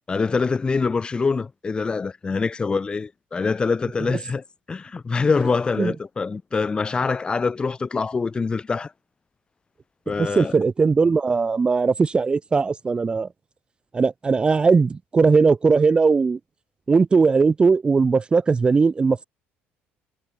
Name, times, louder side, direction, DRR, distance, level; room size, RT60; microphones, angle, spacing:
voice 1, 0.1-8.9 10.1-10.6, left 4 dB, 20° left, 0.6 m, -24 dB
voice 2, 10.2-13.3 13.9-16.4 16.9-19.2, right 4 dB, 20° right, 0.5 m, -19 dB
cardioid pair, 120°, 4 cm